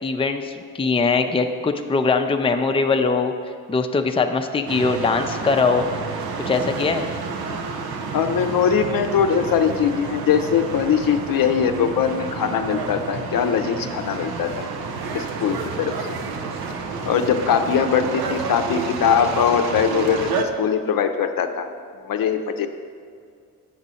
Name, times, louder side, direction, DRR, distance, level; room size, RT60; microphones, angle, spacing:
voice 1, 0.0-3.3 3.7-5.9 6.5-7.1, left 4 dB, 15° left, 5 dB, 0.5 m, -21 dB
sound 1, 4.7-20.4, right 5 dB, 70° right, 0.8 m, -30 dB
voice 2, 8.1-14.7 15.1-16.0 17.0-21.7 22.0-22.7, left 7 dB, 60° left, 7 dB, 0.6 m, -21 dB
7.8 x 6.0 x 4.1 m, 2.2 s
supercardioid pair, 45°, 39 cm